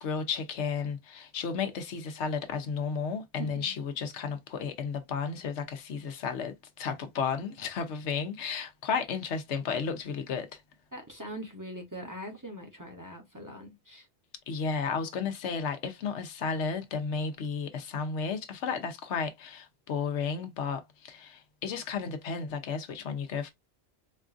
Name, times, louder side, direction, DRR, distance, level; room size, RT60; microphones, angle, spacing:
voice 1, 0.0-10.6 14.5-23.5, left 5 dB, 85° left, 1.0 m, -33 dB
voice 2, 3.4-3.8 10.9-14.1, right 1 dB, 20° right, 0.7 m, -42 dB
4.4 x 2.4 x 2.4 m
omnidirectional pair, 1.2 m